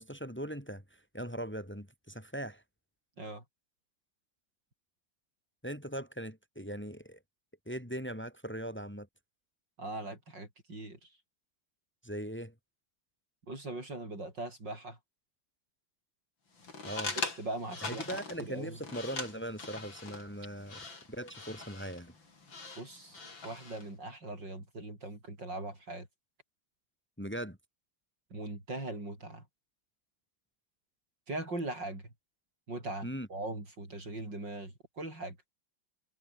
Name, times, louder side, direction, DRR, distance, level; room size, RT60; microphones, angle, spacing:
voice 1, 0.0-2.6 5.6-7.2 7.7-9.1 12.0-12.5 16.8-17.1 17.8-22.1 27.2-27.6 33.0-33.3, equal, 5° left, 5.0 m, -40 dB
voice 2, 9.8-11.1 13.5-15.0 17.2-18.8 22.8-26.1 28.3-29.5 31.3-32.1 32.7-35.4, right 2 dB, 60° right, 8.8 m, -40 dB
sound 1, 16.6-23.9, left 4 dB, 75° left, 5.1 m, -42 dB
omnidirectional pair, 2.2 m